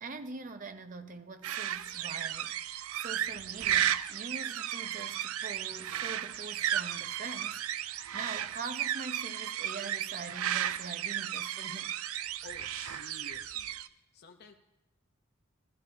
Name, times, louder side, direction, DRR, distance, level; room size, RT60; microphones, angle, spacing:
voice 1, 0.0-11.9, right 3 dB, 40° right, 0.7 m, -44 dB
sound 1, 1.4-13.9, right 11 dB, 85° right, 0.5 m, -34 dB
voice 2, 12.4-13.8 14.1-14.6, left 3 dB, 50° left, 0.7 m, -51 dB
17.0 x 13.0 x 2.7 m
head